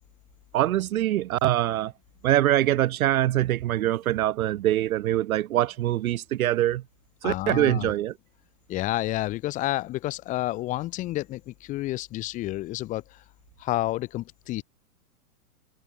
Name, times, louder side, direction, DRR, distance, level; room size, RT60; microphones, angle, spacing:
voice 1, 0.5-1.9 2.2-6.8 7.2-8.1, right 14 dB, 70° right, 0.6 m, -24 dB
voice 2, 7.2-7.9 8.7-13.2 13.6-14.6, left 16 dB, 15° left, 1.7 m, -30 dB
hypercardioid pair, 170°, 45 cm